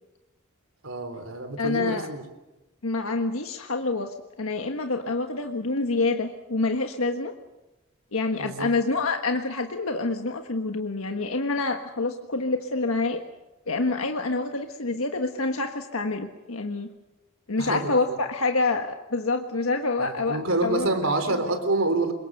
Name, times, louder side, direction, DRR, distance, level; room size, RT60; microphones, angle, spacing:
voice 1, 0.8-2.2 8.4-8.7 17.6-18.0 20.0-22.1, right 2 dB, 70° right, 8 dB, 3.7 m, -27 dB
voice 2, 1.6-2.1 2.8-7.3 8.1-13.2 13.7-16.9 17.5-20.4 20.6-20.9 21.3-21.4, left 3 dB, 85° left, 4 dB, 1.5 m, -27 dB
26.0 x 22.5 x 6.7 m, 1.0 s
head